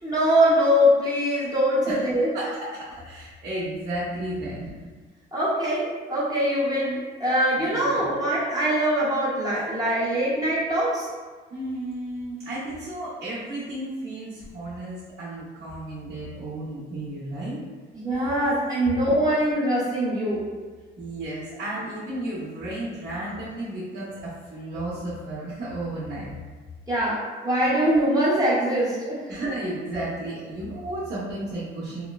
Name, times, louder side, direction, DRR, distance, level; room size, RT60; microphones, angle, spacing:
voice 1, 0.0-2.3 5.3-11.1 17.9-20.4 26.9-29.3, equal, 20° right, -8 dB, 0.8 m, -23 dB
voice 2, 2.3-4.7 7.6-8.1 11.5-17.6 21.0-26.3 29.3-32.1, right 1 dB, 55° right, -11 dB, 0.9 m, -33 dB
2.9 x 2.0 x 2.3 m, 1.4 s
cardioid pair, 90°, 20 cm